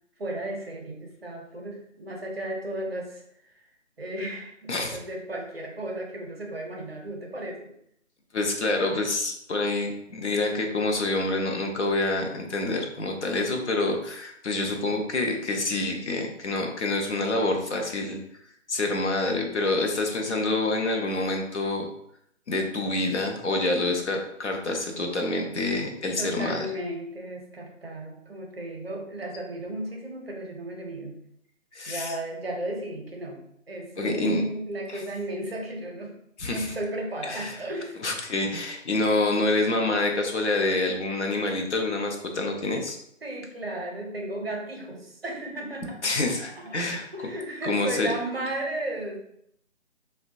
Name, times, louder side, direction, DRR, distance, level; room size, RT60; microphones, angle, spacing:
voice 1, 0.2-3.2 3.5-3.6 4.0-7.7 26.2-31.2 31.9-33.4 33.7-36.1 36.4-38.0 43.2-49.2, right 1 dB, 50° right, 1 dB, 0.6 m, -34 dB
voice 2, 8.3-18.2 18.7-21.9 22.5-26.7 31.7-32.1 34.0-34.4 36.4-36.7 37.3-37.6 38.0-43.0 46.0-47.0 47.6-48.1, left 2 dB, 60° left, 2 dB, 0.6 m, -27 dB
3.0 x 2.1 x 2.6 m, 0.73 s
hypercardioid pair, 175°, 39 cm